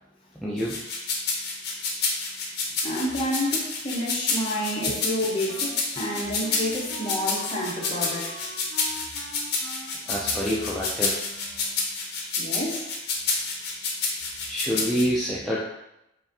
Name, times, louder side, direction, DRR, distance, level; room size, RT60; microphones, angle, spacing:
voice 1, 0.4-0.8 10.1-11.2 14.5-15.6, equal, ahead, 0.3 m, -27 dB
sound 1, 0.6-15.0, left 4 dB, 60° left, 0.7 m, -28 dB
voice 2, 2.8-8.4 12.4-12.9, left 1 dB, 25° left, 0.7 m, -29 dB
Wind instrument woodwind instrument, 4.5-12.0, right 1 dB, 70° right, 0.6 m, -44 dB
4.7 x 2.5 x 2.6 m
head